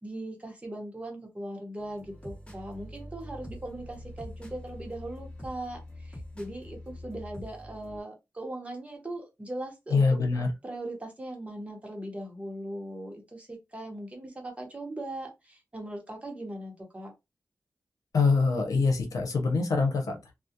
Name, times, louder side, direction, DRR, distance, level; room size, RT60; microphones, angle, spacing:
voice 1, 0.0-10.2 10.6-17.1, right 1 dB, 20° right, 0.8 m, -39 dB
sound 1, 1.8-8.0, left 1 dB, 15° left, 1.0 m, -44 dB
voice 2, 9.9-10.5 18.1-20.3, left 4 dB, 90° left, 0.7 m, -24 dB
2.3 x 2.0 x 2.7 m
wide cardioid pair, 130°, 6 cm